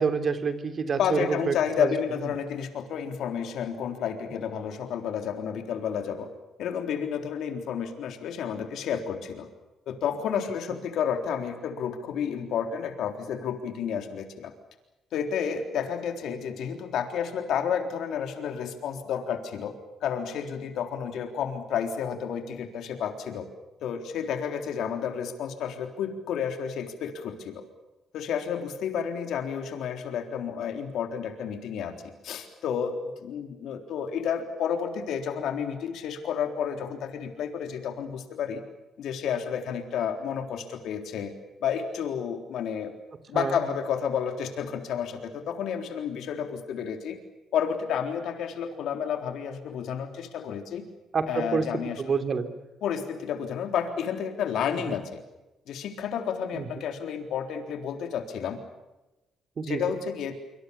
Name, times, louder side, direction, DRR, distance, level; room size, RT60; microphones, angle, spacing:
voice 1, 0.0-1.9 43.3-43.6 51.1-51.6 52.0-52.5 54.9-55.0 56.5-56.7 59.6-59.8, right 5 dB, 45° right, 8 dB, 3.2 m, -27 dB
voice 2, 1.0-6.3 6.6-9.5 9.9-14.5 15.1-19.7 20.0-23.5 23.8-27.6 28.1-31.9 32.2-38.6 39.0-41.3 41.6-42.9 43.3-47.2 47.5-50.9 51.3-52.0 52.8-55.2 55.7-58.6 59.6-60.3, left 7 dB, 80° left, 5 dB, 3.7 m, -31 dB
26.0 x 25.5 x 7.1 m, 1.0 s
cardioid pair, 90°, 0 cm